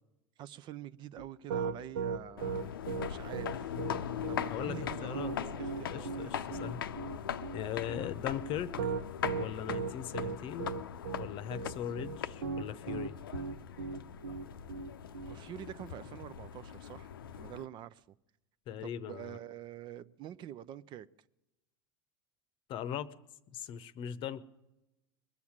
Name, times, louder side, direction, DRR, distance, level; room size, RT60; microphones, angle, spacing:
voice 1, 0.4-2.7 3.0-3.8 4.3-6.4 15.2-18.1 18.8-21.1, right 11 dB, 40° right, 0.5 m, -46 dB
Piano, 1.2-15.4, right 5 dB, 70° right, 0.8 m, -37 dB
sound 1, 2.4-17.6, left 8 dB, 75° left, 0.6 m, -41 dB
voice 2, 4.5-5.3 5.9-6.8 7.5-8.9 9.3-10.7 11.2-13.1 18.7-19.4 22.7-23.1 23.5-24.4, left 9 dB, 45° left, 0.8 m, -39 dB
21.0 x 7.1 x 9.6 m
figure-of-eight pair, 80°, 12 cm